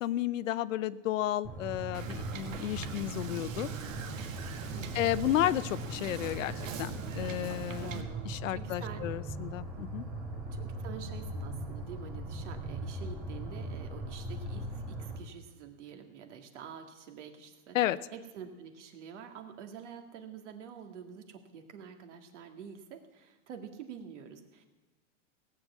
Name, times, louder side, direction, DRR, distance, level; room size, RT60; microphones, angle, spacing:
voice 1, 0.0-3.7 4.9-6.5 6.8-10.0 17.7-18.0, left 13 dB, 85° left, 17 dB, 0.7 m, -32 dB
sound 1, 1.4-15.2, right 1 dB, 5° right, 2.5 m, -40 dB
Wind / Boat Water vehicle, 1.9-8.0, right 7 dB, 85° right, 1.7 m, -42 dB
voice 2, 4.7-5.0 7.8-9.1 10.5-17.8 18.1-24.7, right 7 dB, 65° right, 6 dB, 2.1 m, -47 dB
17.5 x 7.9 x 8.3 m, 1.2 s
supercardioid pair, 160°, 38 cm